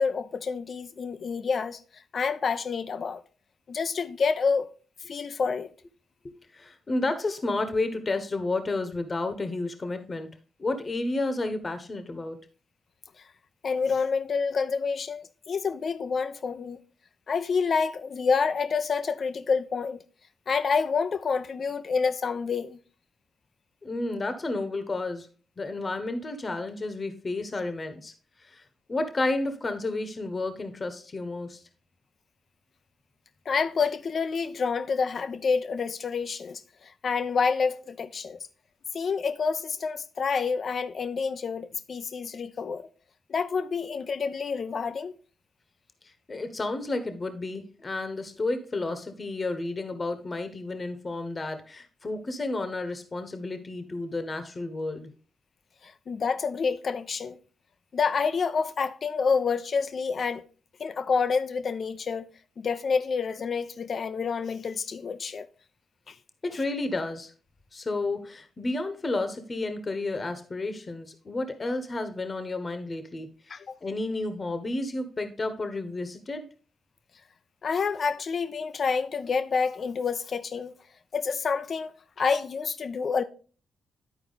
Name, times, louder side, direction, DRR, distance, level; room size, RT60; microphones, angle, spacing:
voice 1, 0.0-3.2 3.7-4.7 5.1-5.7 13.6-16.8 17.3-20.0 20.5-22.8 33.5-38.4 38.9-42.8 43.3-45.1 55.8-57.4 57.9-60.4 60.8-62.3 62.6-65.5 66.1-66.2 73.5-73.7 77.6-80.7 81.1-81.9 82.2-83.2, left 5 dB, 60° left, 0.7 m, -28 dB
voice 2, 6.2-10.3 10.6-12.4 23.8-25.3 25.6-28.1 28.4-28.6 28.9-31.6 46.3-55.1 66.4-67.3 67.7-73.6 73.8-76.4, left 2 dB, 40° left, 1.2 m, -31 dB
10.5 x 4.4 x 4.0 m
supercardioid pair, 50°, 0 cm